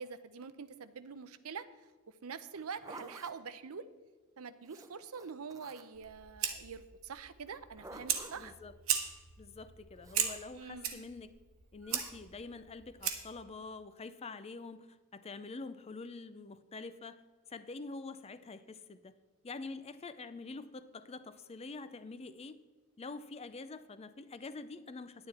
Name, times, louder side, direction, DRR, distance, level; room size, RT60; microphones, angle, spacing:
voice 1, 0.0-1.7 2.2-3.9 4.4-8.6 10.5-11.0, right 5 dB, 90° right, 13 dB, 0.6 m, -45 dB
Zipper (clothing), 2.5-3.3 4.6-6.0 7.5-8.5 10.0-10.4 11.9-12.1, right 2 dB, 15° right, 0.7 m, -51 dB
Fire, 5.9-13.4, right 8 dB, 70° right, 1.1 m, -38 dB
voice 2, 8.4-8.7 9.4-11.3 11.7-14.9 15.1-17.2 17.5-19.1 19.4-22.6 23.0-25.3, left 3 dB, 30° left, 13 dB, 0.5 m, -46 dB
10.5 x 9.7 x 4.3 m, 1.3 s
head